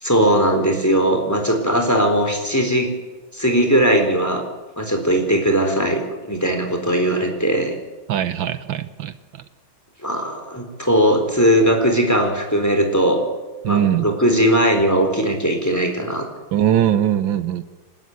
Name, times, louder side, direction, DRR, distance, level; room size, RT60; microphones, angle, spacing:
voice 1, 0.0-2.9 3.3-4.4 4.8-7.7 10.0-13.2 13.7-16.2, equal, 10° left, 3 dB, 3.9 m, -19 dB
voice 2, 8.1-9.1 13.6-14.1 16.5-17.6, right 10 dB, 80° right, 12 dB, 1.6 m, -20 dB
29.0 x 12.5 x 9.5 m, 1.2 s
omnidirectional pair, 2.1 m